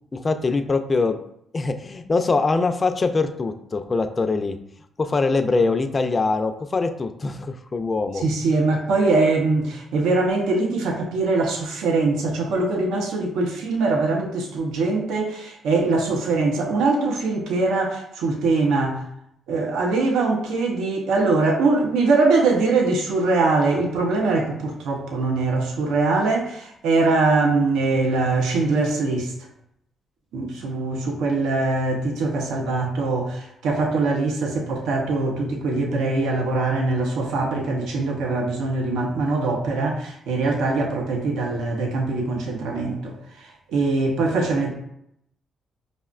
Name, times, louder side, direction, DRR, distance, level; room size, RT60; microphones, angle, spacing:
voice 1, 0.1-1.2 1.5-4.6 5.0-8.2, left 3 dB, 30° left, 7 dB, 0.3 m, -23 dB
voice 2, 8.2-19.0 19.5-29.3 30.3-43.2 43.7-44.7, right 3 dB, 85° right, 1 dB, 0.6 m, -22 dB
5.0 x 2.1 x 2.4 m, 0.75 s
cardioid pair, 90°, 0 cm